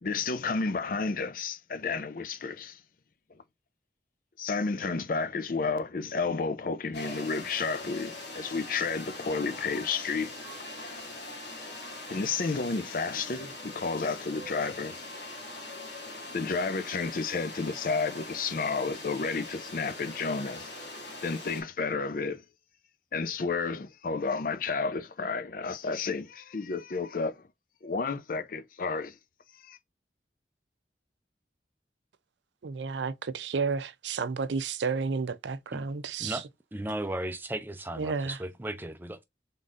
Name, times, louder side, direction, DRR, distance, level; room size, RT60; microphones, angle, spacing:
voice 1, 0.0-2.8 4.4-10.4 12.1-15.0 16.3-20.7 21.2-22.4 23.1-27.4 27.8-29.2 29.6-29.8, left 4 dB, 50° left, 0.5 m, -31 dB
sound 1, 6.9-21.6, left 2 dB, 80° left, 1.8 m, -42 dB
voice 2, 32.6-36.4 38.0-38.4, right 5 dB, 85° right, 0.5 m, -31 dB
voice 3, 36.7-39.2, right 1 dB, 10° right, 0.5 m, -35 dB
3.9 x 3.7 x 2.5 m
head